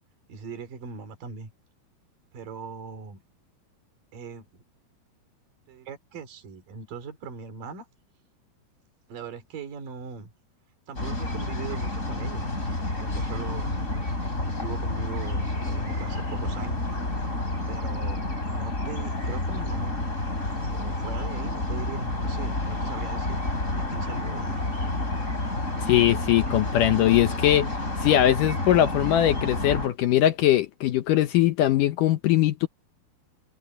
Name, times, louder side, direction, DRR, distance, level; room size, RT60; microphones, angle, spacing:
voice 1, 0.3-1.5 2.3-3.2 4.1-4.4 5.7-7.9 9.1-10.3 10.9-12.5 13.0-13.8 14.5-16.8 17.7-20.0 20.7-23.4 23.8-24.7, right 6 dB, 55° right, 4.9 m, -40 dB
sound 1, 11.0-29.9, left 2 dB, 20° left, 4.8 m, -29 dB
voice 2, 25.9-27.7 28.0-32.7, left 12 dB, 75° left, 2.0 m, -21 dB
omnidirectional pair, 4.7 m